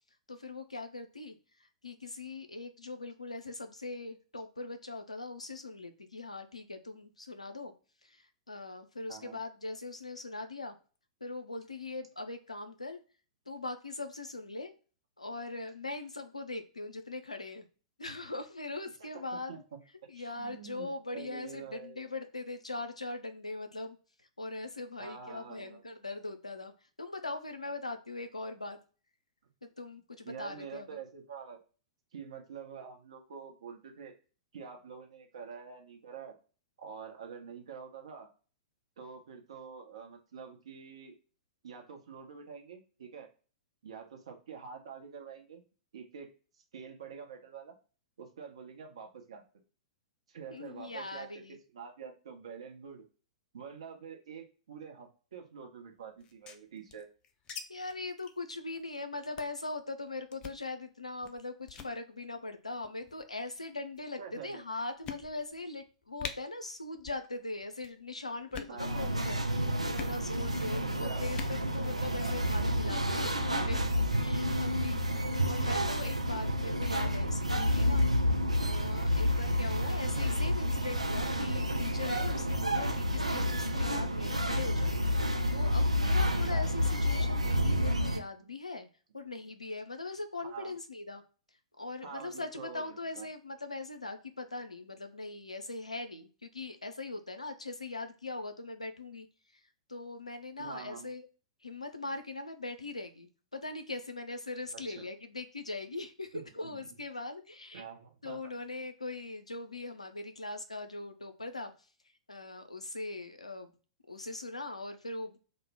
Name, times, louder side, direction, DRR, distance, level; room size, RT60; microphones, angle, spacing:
voice 1, 0.3-1.3 1.6-7.7 8.0-10.8 11.2-13.0 13.5-14.7 15.2-17.7 18.0-19.6 20.1-24.0 24.4-26.7 27.0-28.8 29.6-31.0 50.5-51.6 57.7-69.4 69.9-78.1 78.6-88.9 89.1-91.2 91.8-99.3 99.5-99.6 99.9-101.3 101.6-107.8 108.2-111.7 112.3-113.7 114.1-115.4, left 2 dB, 85° left, 8 dB, 0.4 m, -41 dB
voice 2, 9.1-9.4 19.0-19.6 20.1-22.1 25.0-25.8 30.2-31.6 32.1-34.1 34.5-36.3 36.8-38.3 39.0-41.1 41.6-43.3 43.8-45.6 45.9-46.3 46.5-47.8 48.2-49.4 50.3-51.4 51.7-53.0 53.5-57.1 64.2-64.6 68.7-69.1 70.7-71.4 86.5-86.7 90.4-90.7 92.0-93.3 100.6-101.1 104.7-105.1 106.3-106.9 107.7-108.5, right 6 dB, 60° right, 3 dB, 0.8 m, -46 dB
sound 1, 56.2-57.6 57.9-58.0 58.2-58.4 58.8-59.0 59.4-59.6 60.3-60.6 61.2-61.4 61.7-61.9 62.8-63.3 64.0-64.1 64.5-64.6 65.0-65.6 65.9-66.0 66.2-66.3 67.0-67.3 67.5-67.9 68.4-68.8 69.9-70.2 71.2-71.6, left 7 dB, 25° left, 0.4 m, -43 dB
sound 2, 68.8-88.2, equal, 90° right, 0.4 m, -30 dB
2.1 x 2.0 x 3.3 m, 0.37 s
figure-of-eight pair, 105°, 3 cm